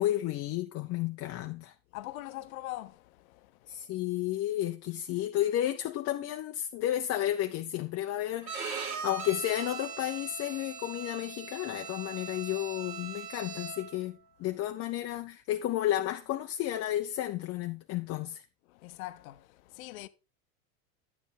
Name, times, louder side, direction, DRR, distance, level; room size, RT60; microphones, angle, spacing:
voice 1, 0.0-1.7 3.7-18.4, left 13 dB, 35° left, 0.6 m, -32 dB
voice 2, 1.9-3.9 18.7-20.1, left 17 dB, 70° left, 0.8 m, -43 dB
Bowed string instrument, 8.4-14.0, right 6 dB, 75° right, 2.9 m, -40 dB
10.5 x 7.3 x 3.6 m
hypercardioid pair, 95°, 43 cm